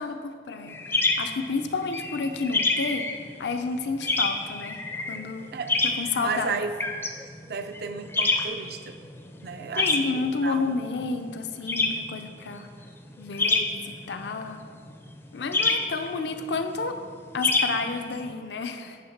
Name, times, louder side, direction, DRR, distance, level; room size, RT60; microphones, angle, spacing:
voice 1, 0.0-3.1 3.4-4.8 5.1-5.5 5.8-6.6 9.8-12.7 13.2-14.6 15.3-17.0 17.3-19.0, left 4 dB, 70° left, 7 dB, 0.5 m, -30 dB
sound 1, 0.7-18.3, left 3 dB, 15° left, 0.4 m, -29 dB
voice 2, 6.2-6.7 7.5-9.0 9.4-10.1 10.4-10.7, right 5 dB, 60° right, 8 dB, 0.4 m, -33 dB
9.1 x 3.2 x 5.9 m, 2.1 s
head